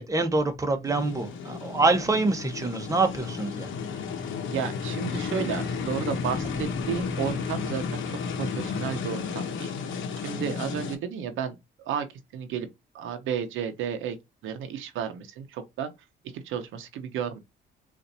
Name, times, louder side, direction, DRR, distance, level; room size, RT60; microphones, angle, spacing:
voice 1, 0.0-3.7, right 3 dB, 15° right, 0.8 m, -25 dB
sound 1, 0.8-11.0, left 5 dB, 75° left, 0.8 m, -33 dB
voice 2, 4.5-9.7 10.2-12.1 12.3-12.7 12.9-14.2 14.4-15.9 16.3-17.4, right 8 dB, 80° right, 0.7 m, -32 dB
sound 2, 5.9-9.2, left 1 dB, 25° left, 1.3 m, -43 dB
4.0 x 2.5 x 2.6 m
cardioid pair, 90°, 20 cm